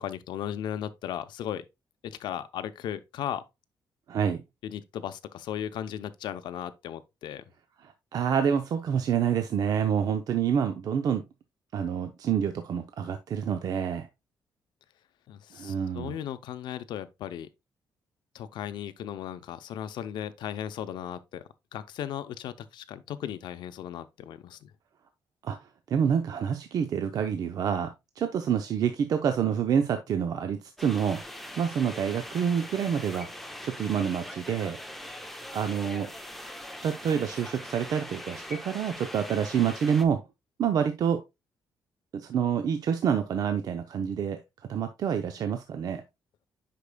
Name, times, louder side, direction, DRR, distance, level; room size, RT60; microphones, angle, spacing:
voice 1, 0.0-1.7 2.0-3.4 4.6-7.4 15.3-17.5 18.3-21.4 21.7-24.7, left 10 dB, 85° left, 0.6 m, -36 dB
voice 2, 4.1-4.4 7.8-11.2 11.7-14.1 15.5-16.1 25.4-27.9 28.2-31.2 31.6-33.3 33.6-34.8 35.5-36.1 36.8-40.2 40.6-41.2 42.1-44.4 44.7-46.0, right 8 dB, 55° right, 0.7 m, -27 dB
sound 1, 30.8-40.1, left 1 dB, ahead, 0.7 m, -42 dB
8.3 x 5.9 x 2.2 m
cardioid pair, 160°, 8 cm